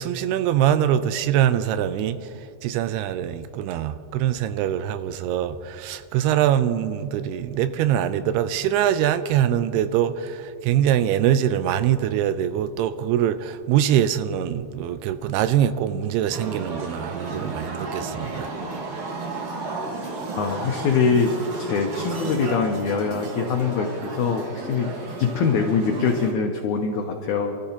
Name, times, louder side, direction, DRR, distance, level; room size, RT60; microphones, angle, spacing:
voice 1, 0.0-2.3 2.6-18.5, right 10 dB, 90° right, 2.7 m, -23 dB
sound 1, 16.3-26.3, right 3 dB, 55° right, 1.6 m, -33 dB
voice 2, 20.4-21.3 21.6-24.9 25.2-27.6, left 5 dB, 85° left, 1.7 m, -23 dB
28.0 x 13.5 x 2.9 m
omnidirectional pair, 4.5 m